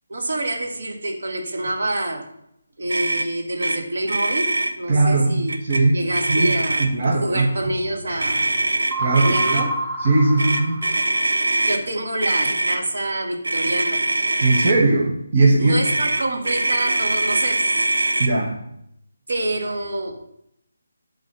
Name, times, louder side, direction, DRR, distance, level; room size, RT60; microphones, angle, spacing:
voice 1, 0.1-2.3 2.8-5.6 5.9-8.6 9.0-9.7 11.7-14.0 15.6-17.7 19.3-20.2, right 1 dB, 65° right, 0 dB, 1.9 m, -27 dB
Motor vehicle (road), 2.9-3.3 3.6-3.8 4.0-4.7 5.5-5.8 6.1-7.0 8.2-9.6 10.4-11.8 12.2-12.8 13.4-14.8 15.8-18.3, right 2 dB, 85° right, 0.9 m, -22 dB
voice 2, 4.9-6.0 6.3-7.7 9.0-9.6 10.0-10.8 14.4-15.8 18.2-18.6, right 2 dB, 40° right, -2 dB, 1.2 m, -19 dB
sound 1, 8.9-11.5, right 2 dB, 25° right, 1.0 m, -28 dB
8.6 x 3.9 x 6.7 m, 0.78 s
figure-of-eight pair, 160°, 0 cm